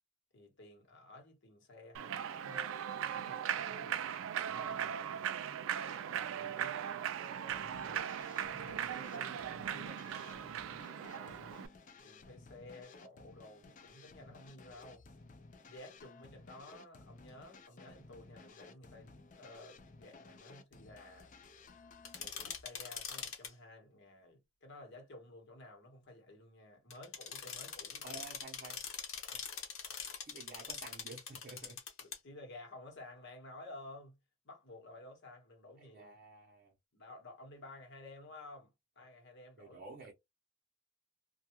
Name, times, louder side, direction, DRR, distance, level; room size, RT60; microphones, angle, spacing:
voice 1, 0.3-2.7 3.0-5.2 5.9-10.5 11.1-11.7 12.0-15.0 15.6-21.3 22.1-28.2 32.0-34.2 34.4-36.2 36.9-38.7 39.0-39.8, left 2 dB, 60° left, 1.1 m, -54 dB
Human voice / Clapping / Cheering, 1.9-11.7, right 9 dB, 70° right, 0.3 m, -39 dB
sound 1, 7.5-22.6, left 3 dB, 40° left, 0.4 m, -56 dB
sound 2, 22.0-23.5 26.9-32.2, left 7 dB, 85° left, 0.8 m, -44 dB
voice 2, 28.0-28.8 30.2-31.8 35.8-36.7 39.6-40.1, right 3 dB, 45° right, 0.7 m, -51 dB
2.2 x 2.2 x 2.9 m
head